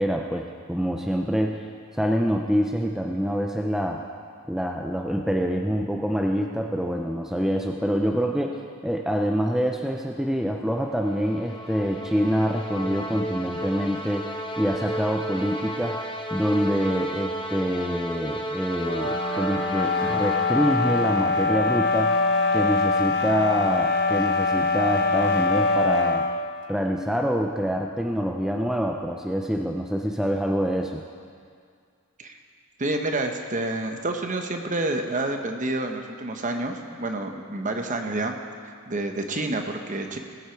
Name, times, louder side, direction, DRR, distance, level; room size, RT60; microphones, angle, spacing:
voice 1, 0.0-1.6 1.9-4.0 4.5-14.3 14.6-16.0 16.3-22.2 22.5-26.3 26.7-31.0, equal, ahead, 1 dB, 0.5 m, -26 dB
sound 1, 10.8-21.4, equal, 20° left, 1.1 m, -33 dB
sound 2, 18.8-26.4, left 3 dB, 60° left, 1.0 m, -23 dB
voice 2, 32.8-38.4 38.6-40.2, right 2 dB, 35° right, 5 dB, 0.9 m, -28 dB
19.5 x 8.1 x 4.6 m, 2.2 s
head